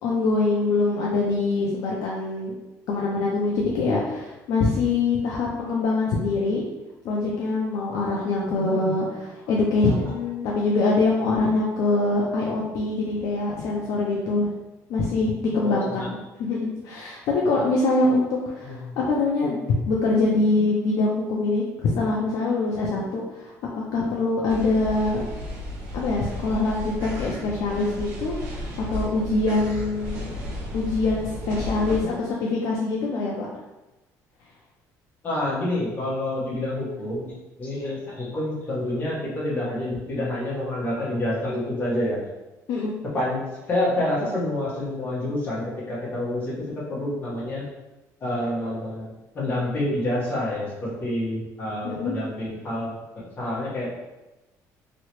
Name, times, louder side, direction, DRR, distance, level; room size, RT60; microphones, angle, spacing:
voice 1, 0.0-2.6 2.9-6.6 7.0-14.5 14.9-19.6 19.9-25.3 25.9-28.6 28.9-30.3 30.7-33.5 42.7-43.0 51.8-52.1, left 3 dB, 60° left, -3 dB, 0.5 m, -24 dB
voice 2, 8.4-9.0 15.6-16.1 18.6-18.9 35.2-42.3 43.1-43.4 43.7-47.6 48.2-49.1 49.3-53.9, left 1 dB, 30° left, -7 dB, 1.2 m, -28 dB
sound 1, 24.5-32.0, left 1 dB, 80° right, 1.0 m, -33 dB
3.1 x 2.8 x 3.0 m, 1.0 s
cardioid pair, 170°, 6 cm